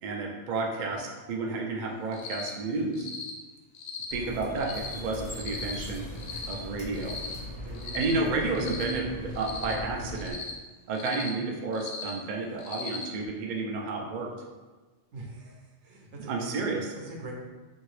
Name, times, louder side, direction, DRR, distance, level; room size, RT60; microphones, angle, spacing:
voice 1, 0.0-3.1 4.1-6.0 6.5-7.2 7.9-10.4 10.9-14.3 16.3-16.9, right 3 dB, 60° right, 0 dB, 0.5 m, -31 dB
Cricket, 2.1-2.5 2.9-3.3 3.7-4.1 4.6-4.9 5.3-5.7 6.2-6.5 6.9-7.3 7.7-8.1 8.5-8.9 9.3-9.7 10.2-10.5 10.9-11.3 11.7-12.1 12.6-13.0, left 5 dB, 80° left, 0.9 m, -38 dB
sound 1, 4.1-10.3, left 1 dB, 50° left, 0.3 m, -40 dB
voice 2, 7.6-9.4 15.1-16.6 16.9-17.3, right 2 dB, 85° right, -1 dB, 1.0 m, -44 dB
2.8 x 2.7 x 3.1 m, 1.3 s
omnidirectional pair, 1.2 m